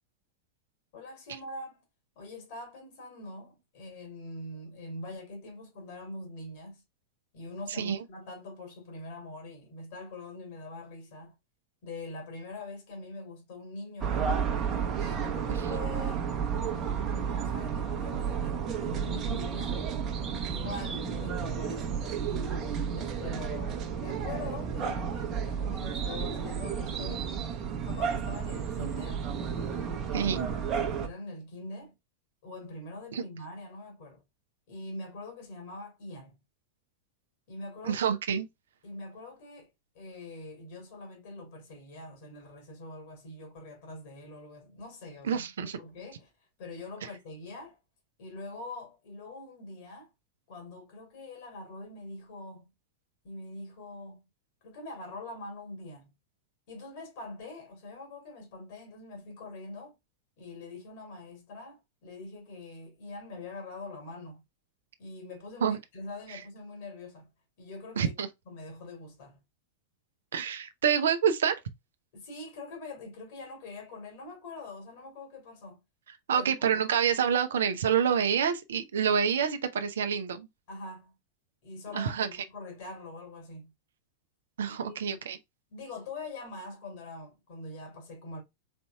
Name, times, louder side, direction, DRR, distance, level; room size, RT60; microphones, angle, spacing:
voice 1, 0.9-1.8 2.2-6.8 7.3-11.3 11.8-14.3 14.9-16.3 17.1-19.8 20.5-27.3 27.8-29.3 30.1-31.9 32.4-34.2 34.7-36.4 37.5-38.2 38.8-39.7 39.9-46.3 46.6-47.8 48.2-50.1 50.5-52.7 53.2-54.2 54.6-56.1 56.7-59.9 60.4-64.4 65.0-67.3 67.6-68.1 68.5-69.4 72.1-75.8 76.3-76.8 79.0-79.2 80.7-81.1 81.6-83.7 84.7-85.2 85.7-88.4, left 2 dB, 50° left, 2.4 m, -44 dB
voice 2, 7.7-8.0 30.1-30.5 33.1-33.2 37.8-38.4 45.2-45.8 65.6-65.8 66.3-66.4 68.0-68.3 70.3-71.6 76.3-80.5 81.9-82.3 84.6-85.4, right 7 dB, 65° right, 0.6 m, -27 dB
sound 1, 14.0-31.1, right 7 dB, 30° right, 0.9 m, -32 dB
4.4 x 4.0 x 2.3 m
figure-of-eight pair, 90°, 0 cm